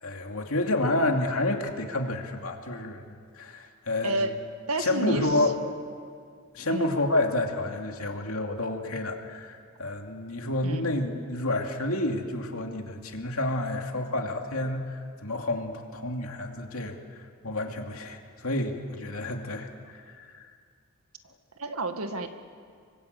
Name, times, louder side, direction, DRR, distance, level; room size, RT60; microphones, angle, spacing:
voice 1, 0.0-3.0 3.4-4.3 4.8-5.6 6.5-17.0 17.4-20.5, left 2 dB, 75° left, 3 dB, 2.7 m, -29 dB
voice 2, 4.7-5.3 6.7-6.9 10.6-10.9 21.6-22.3, right 2 dB, 85° right, 7 dB, 1.9 m, -30 dB
26.0 x 24.0 x 8.4 m, 2.2 s
head